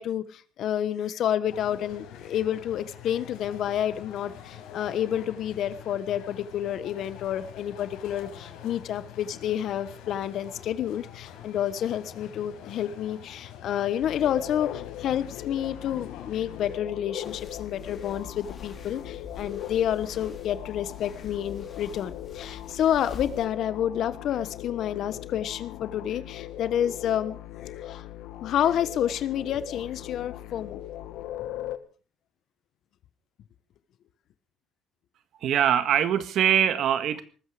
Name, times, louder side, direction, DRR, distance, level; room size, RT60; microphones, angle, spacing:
voice 1, 0.0-28.0 28.4-30.8, left 10 dB, 50° left, 14 dB, 1.3 m, -29 dB
sound 1, 1.5-16.8, left 9 dB, 90° left, 5.0 m, -46 dB
sound 2, 14.0-31.8, left 13 dB, 70° left, 1.5 m, -40 dB
sound 3, 17.2-23.5, left 4 dB, 25° left, 3.7 m, -46 dB
voice 2, 35.4-37.2, right 9 dB, 50° right, 13 dB, 1.7 m, -23 dB
19.5 x 14.5 x 5.1 m, 0.39 s
cardioid pair, 165°, 0 cm